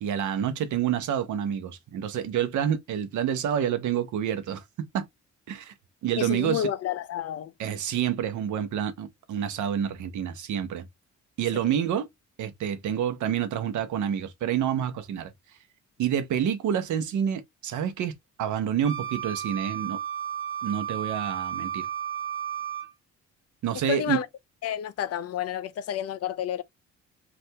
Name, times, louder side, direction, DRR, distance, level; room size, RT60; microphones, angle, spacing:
voice 1, 0.0-4.6 4.9-5.1 5.5-5.7 6.0-6.7 7.6-10.9 11.4-12.1 12.4-15.3 16.0-20.0 20.6-21.9 23.6-24.2, right 9 dB, 75° right, 0.8 m, -28 dB
voice 2, 6.2-7.5 11.5-11.6 23.9-24.3 24.6-26.6, left 10 dB, 55° left, 0.5 m, -30 dB
Wind instrument woodwind instrument, 18.8-22.9, right 9 dB, 45° right, 1.1 m, -33 dB
2.7 x 2.5 x 3.2 m
cardioid pair, 90°, 30 cm